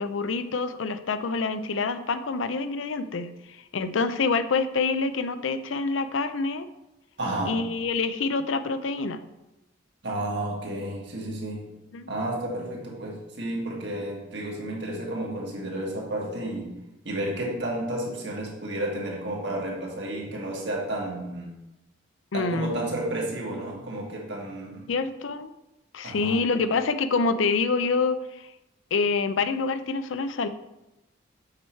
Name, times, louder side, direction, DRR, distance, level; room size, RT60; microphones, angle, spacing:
voice 1, 0.0-3.3 3.7-6.7 7.5-9.2 11.9-12.1 22.3-22.7 24.9-25.5 25.9-28.5 28.9-30.5, left 4 dB, 85° left, 11 dB, 0.5 m, -26 dB
voice 2, 7.2-7.6 10.0-11.6 12.1-16.7 17.0-21.5 22.3-24.9 26.0-26.4, right 1 dB, 60° right, -1 dB, 1.8 m, -31 dB
7.4 x 4.7 x 4.5 m, 0.95 s
head